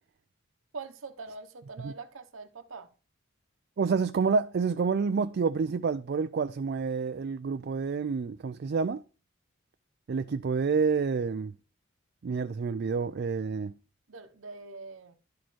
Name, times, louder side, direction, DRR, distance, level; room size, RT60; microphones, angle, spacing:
voice 1, 0.7-2.9 14.1-15.1, right 4 dB, 90° right, 1.0 m, -43 dB
voice 2, 3.8-9.0 10.1-11.5 12.2-13.7, right 5 dB, 55° right, 0.4 m, -28 dB
11.5 x 4.3 x 4.5 m
head